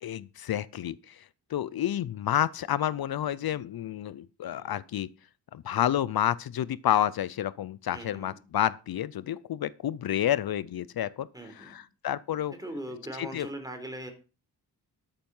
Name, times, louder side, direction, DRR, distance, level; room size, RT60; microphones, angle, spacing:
voice 1, 0.0-1.2 1.5-5.1 5.5-11.3 11.5-12.5 13.2-13.5, left 11 dB, 65° left, 0.6 m, -29 dB
voice 2, 7.9-8.4 11.3-11.7 12.5-14.1, right 1 dB, 10° right, 4.0 m, -40 dB
12.5 x 9.1 x 5.5 m
wide cardioid pair, 110°, 39 cm